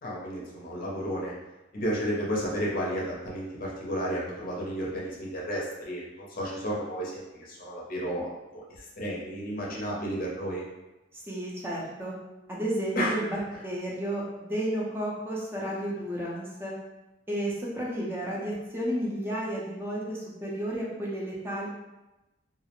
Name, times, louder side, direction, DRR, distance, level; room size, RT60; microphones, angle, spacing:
voice 1, 0.0-1.3 1.7-10.6 13.0-13.2 13.5-13.6, equal, 50° left, -4 dB, 0.6 m, -32 dB
voice 2, 11.1-12.1 12.5-16.7 17.3-21.7, right 1 dB, 15° right, -5 dB, 0.5 m, -32 dB
2.3 x 2.0 x 2.9 m, 1.0 s
head